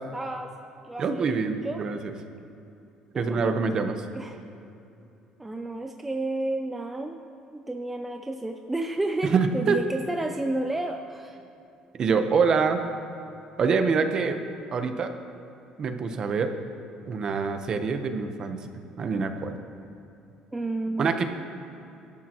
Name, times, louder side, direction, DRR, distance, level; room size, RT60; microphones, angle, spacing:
voice 1, 0.1-0.5 0.8-1.8 3.1-3.5 4.1-4.4 5.4-7.2 7.5-11.4 20.5-21.1, right 2 dB, 10° right, 4 dB, 0.5 m, -31 dB
voice 2, 1.0-2.1 3.1-4.0 9.3-9.8 12.0-12.8 13.6-14.4 14.7-15.1 15.8-16.5 17.1-18.6 19.0-19.5 21.0-21.2, right 5 dB, 35° right, 7 dB, 1.0 m, -25 dB
23.5 x 12.5 x 3.1 m, 2.8 s
cardioid pair, 150°, 2 cm